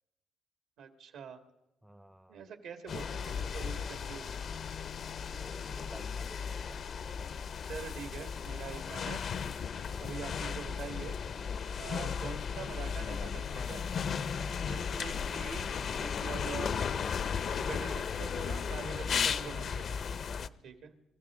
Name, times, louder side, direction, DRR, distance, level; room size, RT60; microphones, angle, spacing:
voice 1, 0.8-1.4 2.3-4.4 7.7-9.3 10.0-11.2 11.8-13.8 14.6-16.7 17.6-20.0 20.6-20.9, right 6 dB, 85° right, 1.8 m, -44 dB
voice 2, 1.8-2.4 5.4-6.8 9.9-10.2 14.4-14.7, right 1 dB, 5° right, 0.5 m, -53 dB
sound 1, 2.9-20.5, left 6 dB, 55° left, 0.6 m, -35 dB
25.0 x 14.5 x 3.7 m
cardioid pair, 90°, 0 cm